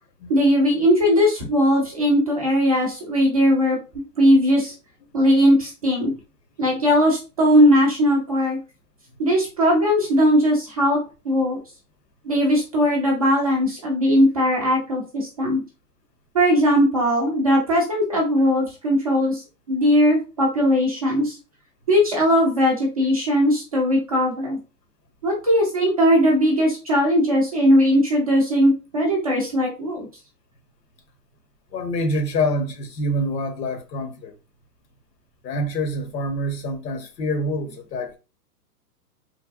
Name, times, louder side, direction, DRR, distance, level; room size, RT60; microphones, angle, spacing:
voice 1, 0.3-4.7 5.1-6.1 6.6-8.6 9.2-11.6 12.2-15.6 16.3-21.4 21.9-24.6 25.2-30.1, equal, 25° right, 0.4 m, -19 dB
voice 2, 31.7-34.3 35.4-38.2, equal, 80° left, 1.2 m, -26 dB
3.2 x 2.2 x 2.4 m
hypercardioid pair, 145°, 49 cm